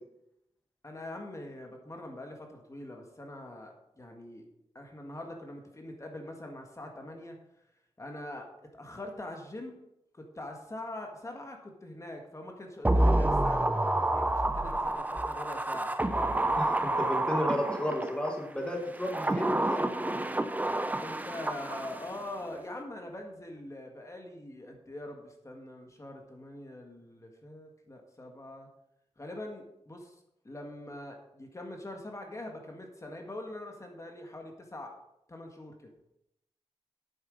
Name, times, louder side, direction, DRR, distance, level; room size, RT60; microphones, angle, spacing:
voice 1, 0.8-4.5 4.7-7.4 8.0-9.8 10.1-16.0 21.0-28.7 29.2-30.2 30.4-35.0 35.3-35.9, left 1 dB, 30° left, 3 dB, 1.7 m, -43 dB
sound 1, 12.8-18.3 18.9-22.2 22.4-22.5, right 1 dB, 15° right, 0.8 m, -28 dB
voice 2, 16.6-19.9, equal, 10° left, 1 dB, 1.5 m, -33 dB
8.9 x 7.3 x 5.2 m, 0.83 s
wide cardioid pair, 85°, 11 cm